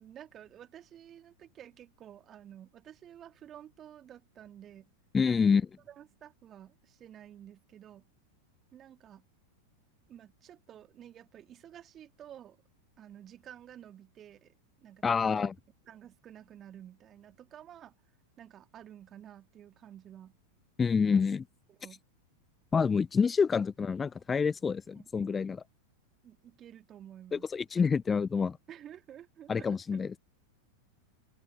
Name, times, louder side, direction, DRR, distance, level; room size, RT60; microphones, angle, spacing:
voice 1, 0.0-4.9 5.2-5.6 5.9-8.1 8.7-9.3 10.1-12.6 13.0-15.5 15.8-17.9 18.4-20.4 21.1-21.3 21.7-22.0 25.0-25.4 26.2-27.5 28.7-30.0, right 10 dB, 30° right, 2.5 m, -51 dB
voice 2, 5.1-5.6 15.0-15.5 20.8-21.4 22.7-25.6 27.3-28.6 29.5-30.2, left 5 dB, 15° left, 0.6 m, -27 dB
figure-of-eight pair, 90°, 0 cm